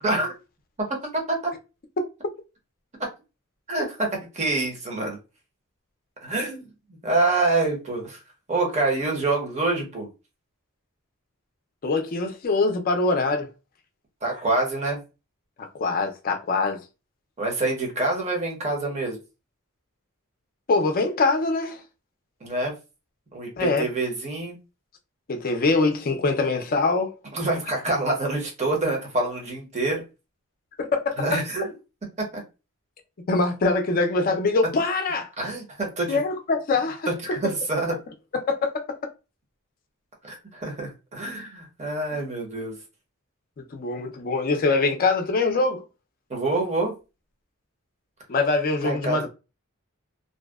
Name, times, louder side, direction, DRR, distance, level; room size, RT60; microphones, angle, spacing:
voice 1, 0.0-0.3 1.4-1.5 3.7-4.1 4.3-5.2 6.2-6.7 7.0-8.2 8.5-10.1 14.2-15.0 17.4-19.2 22.4-22.7 23.3-24.6 27.3-30.0 31.2-31.7 35.4-36.2 37.2-38.0 40.2-42.8 46.3-46.9 48.8-49.3, right 2 dB, 30° right, 0.8 m, -26 dB
voice 2, 11.8-13.5 15.6-16.8 20.7-21.8 23.6-23.9 25.3-27.1 30.8-31.4 33.3-35.3 36.1-37.1 38.5-38.8 43.6-45.8 48.3-49.3, left 3 dB, 40° left, 0.4 m, -23 dB
2.6 x 2.1 x 2.2 m
head